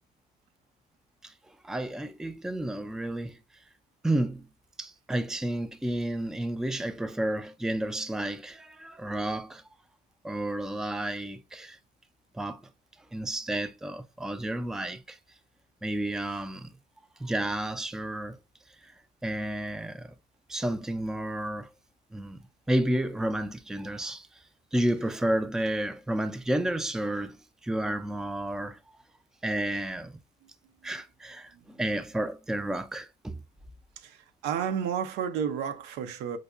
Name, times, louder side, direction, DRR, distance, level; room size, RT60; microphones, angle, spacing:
voice 1, 1.6-3.4 4.0-4.5 4.8-9.6 10.2-11.8 12.3-12.6 13.1-15.2 15.8-16.7 17.2-18.4 18.8-18.9 19.2-20.2 20.5-21.7 22.1-24.4 24.7-27.4 27.6-28.8 29.4-30.2 30.8-33.4, right 1 dB, 5° right, 0.3 m, -31 dB
voice 2, 34.0-36.4, right 8 dB, 90° right, 0.5 m, -32 dB
4.7 x 2.2 x 2.4 m
cardioid pair, 110°, 17 cm